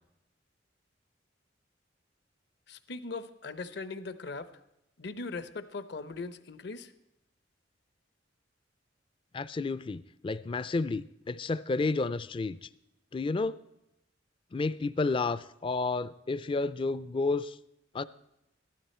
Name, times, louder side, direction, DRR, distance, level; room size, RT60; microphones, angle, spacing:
voice 1, 2.7-4.5 5.0-6.9, left 3 dB, 60° left, 12 dB, 0.8 m, -39 dB
voice 2, 9.3-12.6 13.1-13.6 14.5-17.5 17.9-18.0, left 3 dB, 30° left, 17 dB, 0.4 m, -31 dB
15.0 x 12.5 x 4.3 m, 0.87 s
head